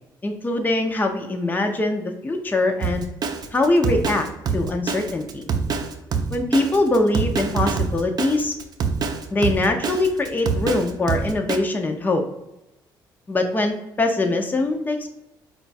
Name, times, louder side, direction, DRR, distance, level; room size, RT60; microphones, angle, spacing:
voice 1, 0.2-3.1 3.5-4.2 4.5-5.4 6.3-8.5 9.3-12.2 13.3-15.1, left 2 dB, 20° left, 4 dB, 0.5 m, -22 dB
Drum kit, 2.8-11.6, right 5 dB, 50° right, 0.6 m, -25 dB
4.4 x 2.3 x 4.0 m, 0.93 s
supercardioid pair, 75°, 9 cm